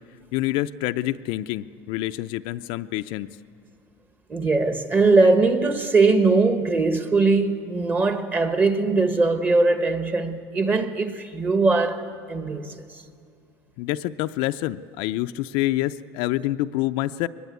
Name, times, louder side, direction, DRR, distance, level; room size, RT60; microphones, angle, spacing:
voice 1, 0.3-3.3 13.8-17.3, left 16 dB, 60° left, 0.5 m, -27 dB
voice 2, 4.3-13.0, right 3 dB, 20° right, 1.2 m, -21 dB
23.0 x 20.0 x 8.2 m
cardioid pair, 145°, 10 cm